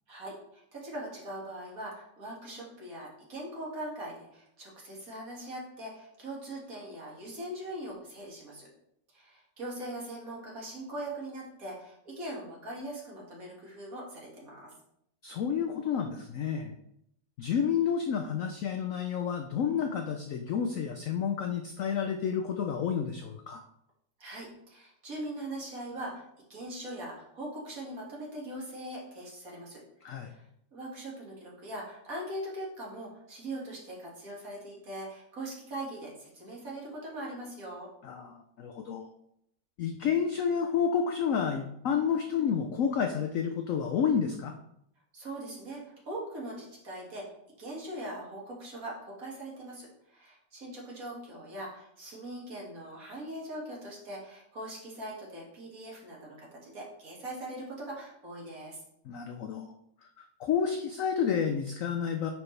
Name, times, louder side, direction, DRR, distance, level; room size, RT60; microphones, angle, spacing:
voice 1, 0.1-8.7 9.1-14.7 24.2-26.2 26.5-29.8 30.2-30.4 30.7-37.9 45.1-58.8, right 1 dB, 50° right, -4 dB, 2.3 m, -41 dB
voice 2, 15.2-16.7 17.4-23.6 30.0-30.4 38.0-39.1 39.8-44.5 59.0-59.7 60.2-62.3, left 7 dB, 75° left, 5 dB, 0.7 m, -30 dB
9.5 x 4.5 x 3.2 m, 0.76 s
omnidirectional pair, 2.0 m